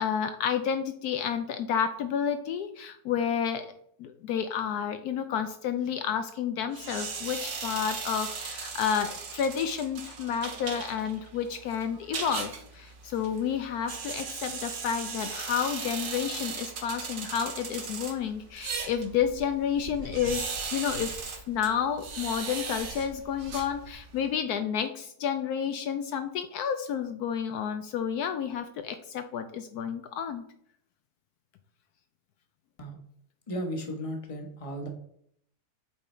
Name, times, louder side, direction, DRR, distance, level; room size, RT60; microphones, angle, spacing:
voice 1, 0.0-3.7 4.0-30.4, left 8 dB, 75° left, 8 dB, 1.1 m, -30 dB
sound 1, 6.7-24.2, right 5 dB, 50° right, 1.2 m, -38 dB
voice 2, 33.5-34.9, equal, 20° left, 2 dB, 1.1 m, -35 dB
8.1 x 3.8 x 4.4 m, 0.69 s
omnidirectional pair, 1.7 m